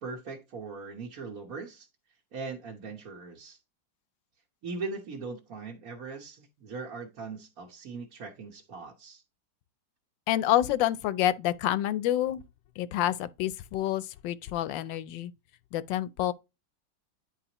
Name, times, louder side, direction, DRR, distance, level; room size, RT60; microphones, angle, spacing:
voice 1, 0.0-1.9 2.3-3.6 4.6-9.2, right 4 dB, 55° right, 1.5 m, -40 dB
voice 2, 10.3-12.4 12.8-15.3 15.7-16.3, left 12 dB, 90° left, 1.3 m, -28 dB
10.0 x 4.8 x 2.9 m
omnidirectional pair, 2.0 m